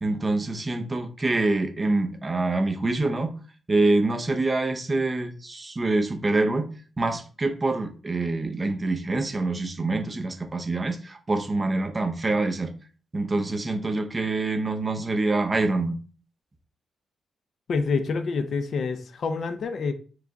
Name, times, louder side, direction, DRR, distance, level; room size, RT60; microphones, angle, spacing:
voice 1, 0.0-3.3 3.7-6.7 7.0-12.7 13.1-16.0, right 2 dB, 25° right, 5 dB, 0.7 m, -25 dB
voice 2, 17.7-19.9, left 4 dB, 65° left, 9 dB, 0.5 m, -27 dB
4.7 x 2.3 x 3.9 m, 0.38 s
cardioid pair, 105°, 0 cm